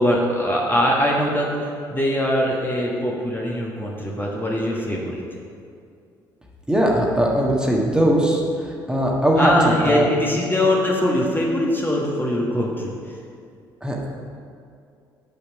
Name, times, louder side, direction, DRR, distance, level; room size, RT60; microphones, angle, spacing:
voice 1, 0.0-5.2 9.4-13.2, left 1 dB, 15° left, -2 dB, 1.4 m, -22 dB
voice 2, 6.7-9.5 9.9-10.0 13.8-14.1, right 1 dB, 5° right, -2 dB, 1.5 m, -20 dB
7.8 x 5.1 x 5.9 m, 2.4 s
figure-of-eight pair, 50°, 11 cm